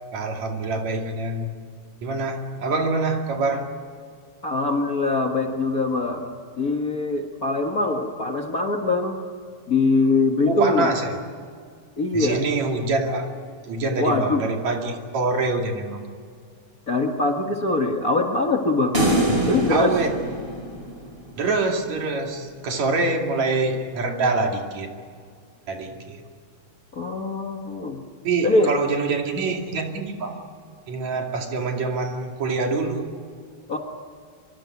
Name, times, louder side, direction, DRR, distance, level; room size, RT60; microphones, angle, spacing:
voice 1, 0.1-1.5 2.0-3.7 10.5-11.1 12.1-13.3 13.7-16.0 19.3-19.4 19.7-20.1 21.4-24.9 25.7-26.2 28.2-30.3 30.9-33.1, right 3 dB, 65° right, 2 dB, 3.8 m, -25 dB
voice 2, 4.4-9.2 9.7-10.9 12.0-12.4 14.0-14.4 16.9-19.0 19.4-19.9 26.9-28.0 28.4-28.7 33.7-33.8, left 3 dB, 35° left, 2 dB, 1.6 m, -23 dB
sound 1, 18.9-21.3, right 1 dB, 20° right, 4.2 m, -24 dB
25.0 x 23.5 x 9.6 m, 2.1 s
omnidirectional pair, 3.5 m